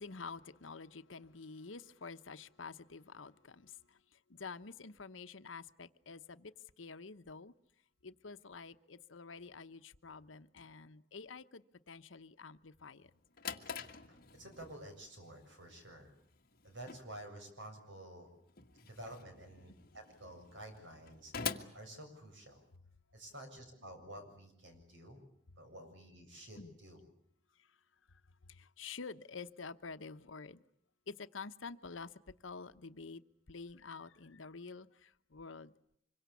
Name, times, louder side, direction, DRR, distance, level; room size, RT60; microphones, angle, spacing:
voice 1, 0.0-7.5 8.0-13.1 26.6-26.8 27.5-27.8 28.1-30.6 31.1-33.2 33.5-35.7, left 4 dB, 90° left, 1.0 m, -49 dB
Drawer open or close, 13.0-22.8, left 6 dB, 50° left, 1.7 m, -47 dB
voice 2, 14.1-16.1 16.6-18.3 18.8-22.6 23.1-25.2 25.6-27.0, right 1 dB, 75° right, 7.2 m, -51 dB
26.0 x 23.5 x 8.5 m
head